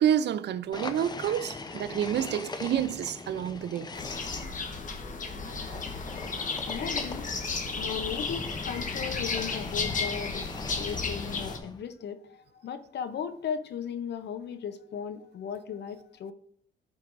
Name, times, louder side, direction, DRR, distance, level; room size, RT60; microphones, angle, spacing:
voice 1, 0.0-3.9, right 10 dB, 60° right, 0.5 m, -28 dB
sound 1, 0.7-4.4 5.4-11.8, left 3 dB, 20° left, 0.6 m, -40 dB
sound 2, 3.9-11.6, left 4 dB, 40° left, 1.2 m, -34 dB
voice 2, 6.7-16.3, left 7 dB, 60° left, 0.7 m, -37 dB
12.5 x 4.6 x 2.5 m
cardioid pair, 90°, 20 cm